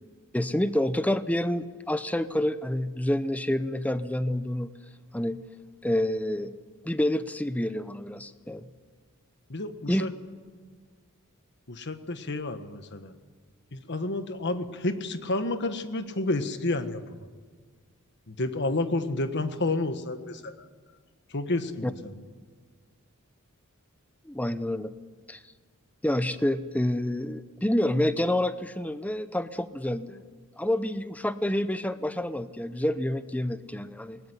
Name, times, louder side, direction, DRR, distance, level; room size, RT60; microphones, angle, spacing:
voice 1, 0.3-4.7 5.1-5.4 5.8-6.5 6.8-8.7 9.9-10.0 21.8-21.9 24.2-24.9 25.3-25.4 26.0-30.2 30.6-34.2, left 1 dB, 5° left, 12 dB, 0.7 m, -28 dB
voice 2, 9.5-10.1 11.7-13.1 13.7-17.0 18.3-20.5 21.3-22.2, left 2 dB, 50° left, 9 dB, 1.4 m, -30 dB
20.5 x 19.0 x 10.0 m, 1.5 s
head